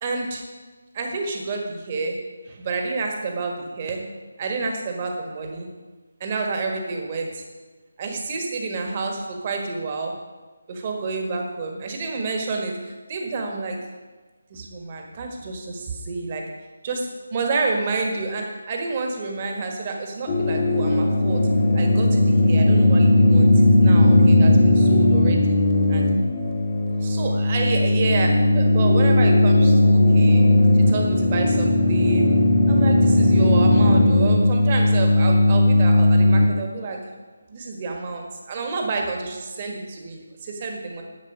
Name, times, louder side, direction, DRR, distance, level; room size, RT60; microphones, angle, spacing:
voice 1, 0.0-0.4 0.9-2.2 2.4-4.0 4.4-5.7 6.2-7.4 8.0-10.1 10.7-13.8 14.5-16.4 16.8-21.5 21.7-25.6 25.9-26.1 27.0-30.4 30.7-32.3 32.7-37.0 37.5-41.0, right 3 dB, 30° right, 2 dB, 1.5 m, -29 dB
sound 1, 20.3-36.5, left 1 dB, 25° left, 1.3 m, -17 dB
10.0 x 7.3 x 5.4 m, 1.3 s
figure-of-eight pair, 155°, 0 cm